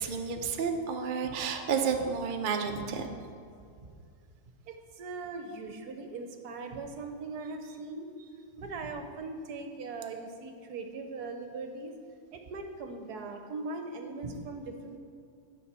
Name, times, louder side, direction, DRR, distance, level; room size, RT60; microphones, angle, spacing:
voice 1, 0.0-3.2, right 6 dB, 80° right, 4 dB, 0.4 m, -31 dB
voice 2, 4.7-11.9 12.3-15.0, right 3 dB, 65° right, 5 dB, 1.2 m, -40 dB
9.9 x 5.1 x 7.4 m, 2.3 s
omnidirectional pair, 2.0 m